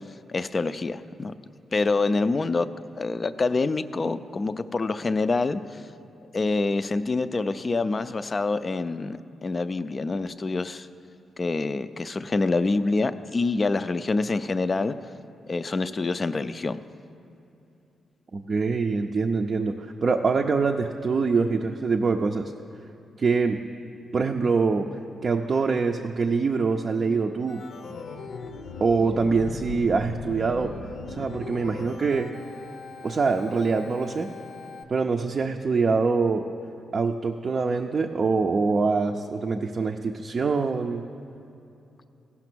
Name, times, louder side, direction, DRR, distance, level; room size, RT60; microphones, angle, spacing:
voice 1, 0.3-1.3 1.7-2.7 3.0-5.8 6.3-10.9 11.4-14.9 15.5-16.8, left 3 dB, 35° left, 12 dB, 0.4 m, -26 dB
voice 2, 18.3-22.5 23.2-23.6 24.1-24.9 25.2-27.6 28.8-30.7 31.2-32.3 33.0-34.3 34.9-36.4 36.9-41.0, right 4 dB, 45° right, 2 dB, 0.5 m, -24 dB
Organ, 27.5-34.8, left 3 dB, 85° left, 0.7 m, -39 dB
16.0 x 5.8 x 6.1 m, 2.8 s
cardioid pair, 105°, 0 cm